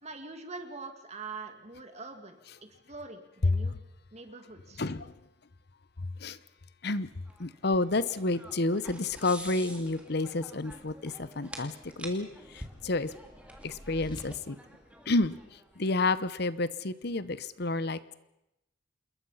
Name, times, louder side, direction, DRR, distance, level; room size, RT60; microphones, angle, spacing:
voice 1, 0.0-2.4 2.9-3.8 4.1-4.8, right 3 dB, 35° right, 6 dB, 2.4 m, -43 dB
voice 2, 4.8-5.1 6.0-6.4 6.8-7.1 7.4-13.1 13.6-14.6 15.1-15.4 15.8-18.1, left 2 dB, 60° left, 15 dB, 1.0 m, -30 dB
sound 1, 7.3-15.8, right 1 dB, 5° right, 2.7 m, -48 dB
sound 2, 12.3-14.2, equal, 25° left, 2.6 m, -51 dB
27.5 x 21.5 x 5.8 m, 0.89 s
head